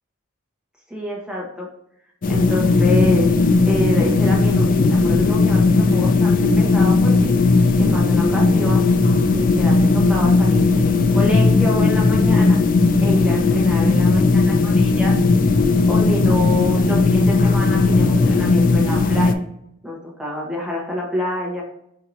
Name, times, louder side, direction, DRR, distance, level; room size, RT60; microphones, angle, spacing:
voice 1, 0.9-1.7 2.3-3.3 3.7-7.3 7.8-8.9 9.3-12.6 13.0-15.1 15.9-19.3 19.8-21.6, left 1 dB, 5° right, -3 dB, 1.0 m, -27 dB
sound 1, 2.2-19.3, left 3 dB, 40° left, 0.4 m, -16 dB
4.5 x 4.4 x 2.7 m, 0.76 s
head